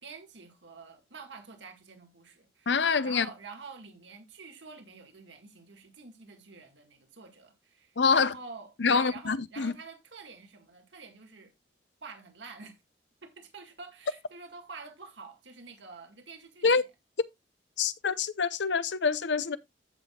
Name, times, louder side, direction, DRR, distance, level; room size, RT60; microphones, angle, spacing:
voice 1, 0.0-11.5 12.0-12.8 13.2-16.7, right 4 dB, 90° right, 2.0 m, -48 dB
voice 2, 2.7-3.3 8.0-8.3 8.8-9.7 16.6-16.8 17.8-19.6, left 5 dB, 85° left, 0.7 m, -26 dB
15.0 x 5.9 x 2.3 m
head